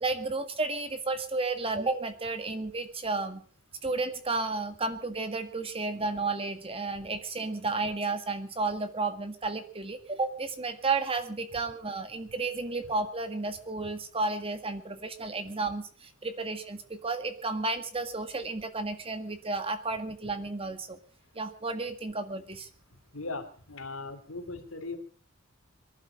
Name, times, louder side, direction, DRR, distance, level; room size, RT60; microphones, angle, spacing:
voice 1, 0.0-3.4 3.8-21.0 21.4-22.7, right 3 dB, 25° right, 9 dB, 1.8 m, -32 dB
voice 2, 23.1-25.0, left 3 dB, 75° left, 6 dB, 3.2 m, -38 dB
23.5 x 11.5 x 5.3 m, 0.43 s
head